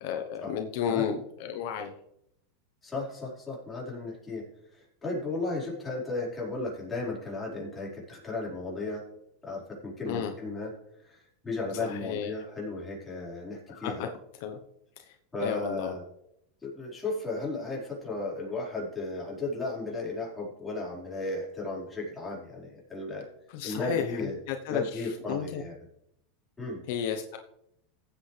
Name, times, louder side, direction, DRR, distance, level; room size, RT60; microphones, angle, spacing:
voice 1, 0.0-1.9 10.1-10.3 11.8-12.3 13.7-14.1 14.4-14.6 15.0-15.2 15.4-15.9 23.5-25.6 26.9-27.4, left 8 dB, 65° left, 6 dB, 1.0 m, -33 dB
voice 2, 2.8-4.4 4.7-9.0 9.4-10.7 11.0-14.1 15.3-16.0 16.6-23.3 23.6-24.4 24.7-25.7 26.6-26.8, left 2 dB, 15° left, -5 dB, 4.7 m, -35 dB
15.5 x 8.2 x 3.4 m, 0.78 s
supercardioid pair, 140°, 0 cm